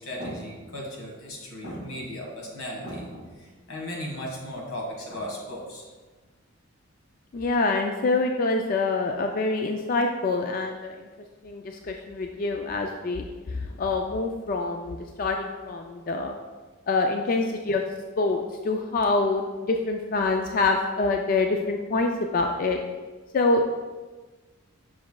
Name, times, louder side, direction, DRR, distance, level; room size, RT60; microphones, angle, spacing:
voice 1, 0.0-5.8, equal, 90° left, -1 dB, 1.6 m, -36 dB
voice 2, 7.3-11.1 11.4-16.3 16.9-17.8 18.2-22.8 23.3-23.7, left 3 dB, 40° left, 3 dB, 0.3 m, -26 dB
7.3 x 5.8 x 2.3 m, 1.3 s
head